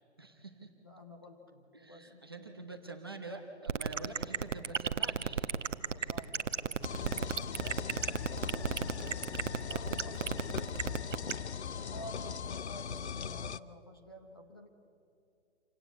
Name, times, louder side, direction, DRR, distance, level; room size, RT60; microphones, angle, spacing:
voice 1, 0.2-0.7 1.7-5.5 6.0-6.1, right 3 dB, 20° right, 3 dB, 0.9 m, -46 dB
voice 2, 0.8-2.7 3.9-4.1 5.9-9.3 9.7-14.7, equal, 20° left, 3 dB, 0.8 m, -52 dB
sound 1, 3.7-11.3, right 6 dB, 90° right, 1.2 m, -32 dB
sound 2, 6.8-13.6, left 7 dB, 65° left, 0.7 m, -39 dB
27.0 x 17.5 x 8.2 m, 2.7 s
hypercardioid pair, 180°, 36 cm